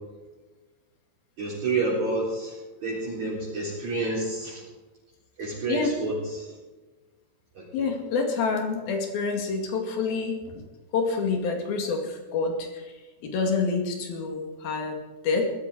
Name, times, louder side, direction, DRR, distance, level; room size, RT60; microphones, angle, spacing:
voice 1, 1.4-4.6 5.4-6.5 7.5-7.9, right 2 dB, 35° right, -6 dB, 5.0 m, -29 dB
voice 2, 7.7-10.7 10.9-12.9 13.2-15.5, left 4 dB, 55° left, 3 dB, 3.5 m, -27 dB
19.0 x 13.0 x 5.0 m, 1.2 s
omnidirectional pair, 5.8 m